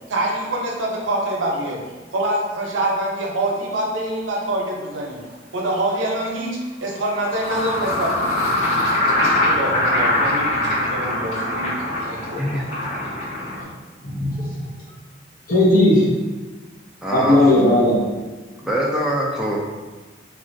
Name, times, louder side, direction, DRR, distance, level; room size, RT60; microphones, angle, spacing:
voice 1, 0.1-1.8 2.1-5.2 5.5-8.5 9.1-11.7 12.0-12.6, right 1 dB, 85° right, -1 dB, 0.6 m, -25 dB
sound 1, 5.3-5.4 6.9-13.6, left 1 dB, 85° left, 1.5 m, -22 dB
voice 2, 12.4-13.0 13.3-13.4 17.0-17.4 18.6-19.6, equal, 5° right, -4 dB, 0.3 m, -24 dB
voice 3, 14.0-14.6 15.5-16.0 17.1-18.0, left 1 dB, 45° left, -5 dB, 0.7 m, -16 dB
2.9 x 2.4 x 2.6 m, 1.3 s
head